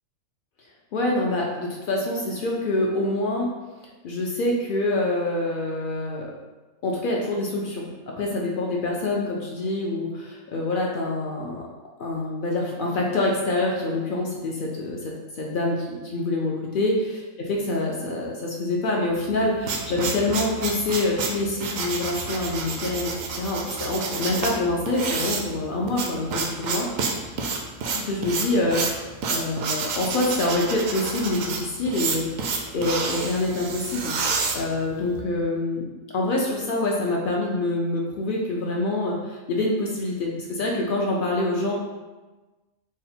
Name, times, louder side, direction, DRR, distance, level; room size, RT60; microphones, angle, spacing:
voice 1, 0.9-3.5 4.0-6.3 6.8-7.9 8.2-11.6 12.0-17.0 17.5-23.1 23.4-26.9 27.9-28.8 29.3-32.3 32.7-34.2 34.5-35.9 36.1-41.7, left 2 dB, 75° left, -1 dB, 0.4 m, -26 dB
sound 1, 19.3-35.2, right 4 dB, 75° right, 0.9 m, -29 dB
3.7 x 2.1 x 4.1 m, 1.2 s
omnidirectional pair, 1.4 m